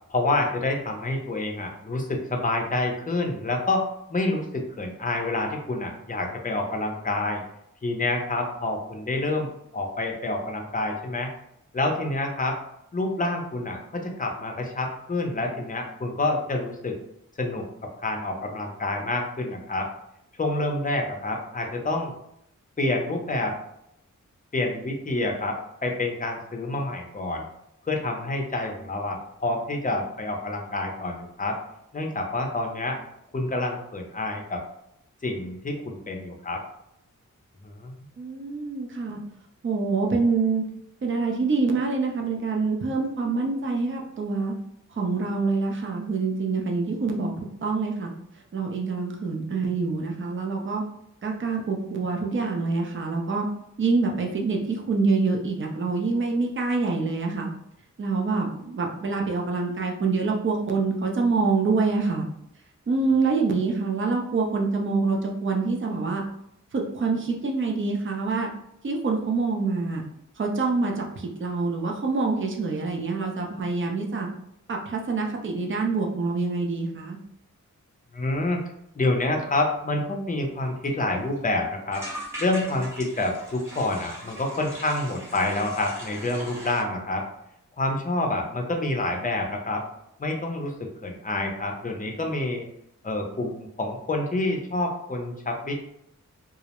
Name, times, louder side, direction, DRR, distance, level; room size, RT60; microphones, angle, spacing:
voice 1, 0.1-7.4 7.8-11.3 11.7-12.6 12.9-17.0 17.4-17.6 18.0-19.9 20.4-22.1 22.8-23.5 24.5-27.5 27.9-31.6 31.9-33.0 33.3-34.6 35.2-36.6 37.6-37.9 78.1-78.6 78.9-82.0 82.4-87.3 87.8-89.8 90.2-92.7 93.0-95.7, left 2 dB, 25° left, 2 dB, 0.5 m, -28 dB
voice 2, 38.2-39.2 39.6-40.6 41.0-44.5 44.9-48.1 48.5-50.8 51.2-53.5 53.8-57.5 58.0-62.2 62.9-66.2 66.7-68.5 68.8-70.0 70.4-74.3 74.7-77.2, right 4 dB, 40° right, 0 dB, 0.5 m, -26 dB
sound 1, 80.5-80.6 80.8-80.9 81.2-81.4 81.9-86.8, right 1 dB, 10° right, 0.8 m, -40 dB
2.4 x 2.0 x 2.9 m, 0.76 s
wide cardioid pair, 90°, 31 cm